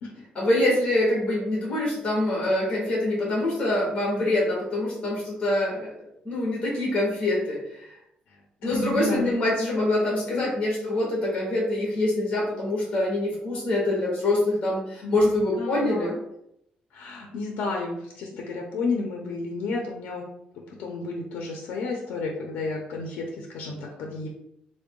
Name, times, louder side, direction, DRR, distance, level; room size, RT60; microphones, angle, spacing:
voice 1, 0.3-5.9 6.2-7.9 8.6-16.2, left 1 dB, 40° left, -4 dB, 1.4 m, -25 dB
voice 2, 8.6-9.3 10.2-10.5 15.0-16.2 16.9-20.2 20.5-24.3, left 3 dB, 90° left, 1 dB, 0.6 m, -32 dB
3.7 x 2.2 x 3.7 m, 0.77 s
cardioid pair, 140°, 3 cm